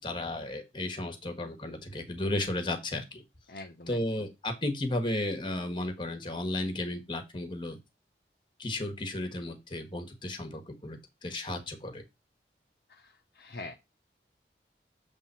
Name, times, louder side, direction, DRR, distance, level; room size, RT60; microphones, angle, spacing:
voice 1, 0.0-3.2 3.9-7.8 8.6-12.0, left 1 dB, 25° left, 7 dB, 1.4 m, -34 dB
voice 2, 3.5-4.3 8.8-8.9 12.9-13.8, left 2 dB, 55° left, 4 dB, 0.8 m, -45 dB
7.5 x 3.5 x 5.6 m, 0.23 s
head